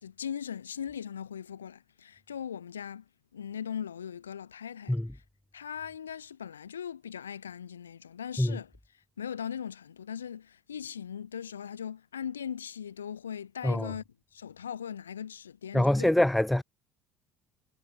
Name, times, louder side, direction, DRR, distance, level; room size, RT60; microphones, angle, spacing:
voice 1, 0.0-3.0 3.3-5.2 5.5-8.7 9.2-14.0 14.3-16.1, left 8 dB, 85° left, 1.2 m, -39 dB
voice 2, 15.7-16.6, left 1 dB, 5° left, 0.4 m, -24 dB
figure-of-eight pair, 55°, 0 cm